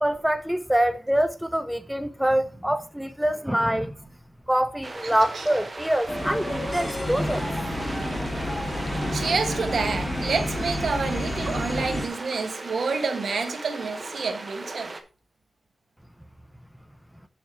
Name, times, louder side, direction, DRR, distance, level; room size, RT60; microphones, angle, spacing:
voice 1, 0.0-4.0 4.5-7.5 7.9-8.0, right 1 dB, 5° right, 0.4 m, -25 dB
sound 1, 4.8-15.0, right 2 dB, 30° right, 0.9 m, -38 dB
voice 2, 5.0-5.4 8.9-15.0, right 4 dB, 65° right, 1.1 m, -29 dB
sound 2, 6.1-12.1, left 1 dB, 20° left, 1.6 m, -29 dB
7.1 x 6.1 x 4.3 m
wide cardioid pair, 170°, 0 cm